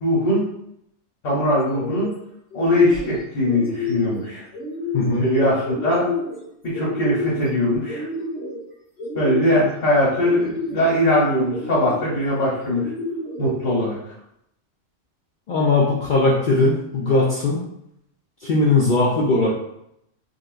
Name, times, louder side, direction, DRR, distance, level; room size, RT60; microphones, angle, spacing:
voice 1, 0.0-0.5 1.2-2.1 2.5-4.4 5.2-6.1 6.6-8.1 9.1-12.9 13.4-14.0, left 1 dB, 80° left, -6 dB, 1.3 m, -20 dB
sound 1, 1.6-2.1 2.5-3.2 3.4-4.2 4.5-5.2 5.6-6.4 6.7-7.5 7.8-8.6 9.0-9.7 10.2-10.9 11.5-12.2 12.7-13.5, left 2 dB, 10° right, 1.0 m, -30 dB
voice 2, 4.9-5.3 15.5-17.6 18.4-19.5, left 3 dB, 60° left, -4 dB, 0.5 m, -19 dB
3.7 x 2.1 x 2.4 m, 0.77 s
omnidirectional pair, 1.3 m